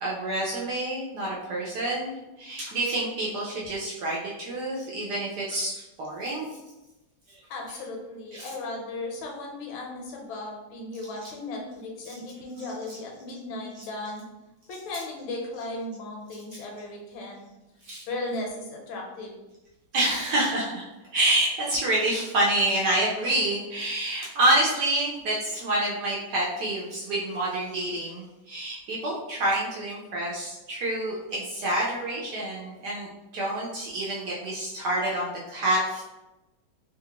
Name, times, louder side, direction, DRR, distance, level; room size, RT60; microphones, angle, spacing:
voice 1, 0.0-6.5 7.3-7.4 8.3-8.5 12.0-12.1 12.9-13.0 17.8-18.0 19.9-36.0, right 1 dB, 70° right, -4 dB, 1.0 m, -28 dB
voice 2, 7.5-14.2 14.7-17.5 18.1-19.3, left 2 dB, 75° left, 0 dB, 1.5 m, -36 dB
3.3 x 2.4 x 2.8 m, 1.0 s
omnidirectional pair, 2.2 m